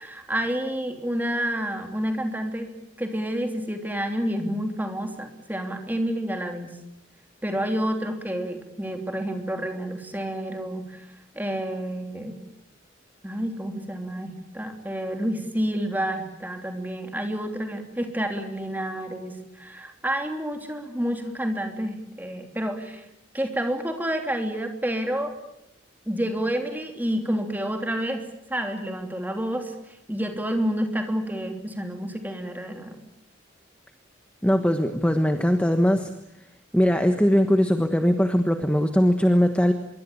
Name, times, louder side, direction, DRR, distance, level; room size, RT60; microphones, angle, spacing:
voice 1, 0.0-2.7 3.0-6.8 7.4-11.1 11.3-12.4 13.2-23.0 23.3-25.3 26.1-33.0, equal, 10° right, 4 dB, 3.2 m, -29 dB
voice 2, 34.4-36.1 36.7-39.7, equal, 5° left, 6 dB, 1.3 m, -20 dB
25.0 x 23.0 x 8.8 m, 0.82 s
head